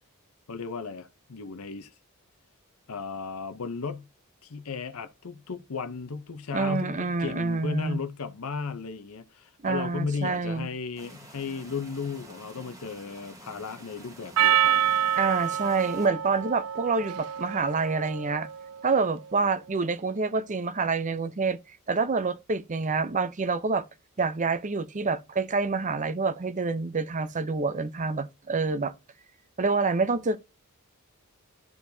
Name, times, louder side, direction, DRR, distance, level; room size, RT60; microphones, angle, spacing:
voice 1, 0.5-1.9 2.9-4.1 4.4-14.9, left 5 dB, 70° left, 0.7 m, -35 dB
voice 2, 6.5-8.0 9.6-10.7 15.2-18.5 18.8-21.6 21.9-23.9 24.2-28.9 29.6-30.4, right 4 dB, 35° right, 0.6 m, -27 dB
sound 1, 11.0-16.1, right 1 dB, 15° right, 1.3 m, -49 dB
Percussion, 14.4-19.0, right 10 dB, 75° right, 0.3 m, -27 dB
12.0 x 4.6 x 2.7 m
head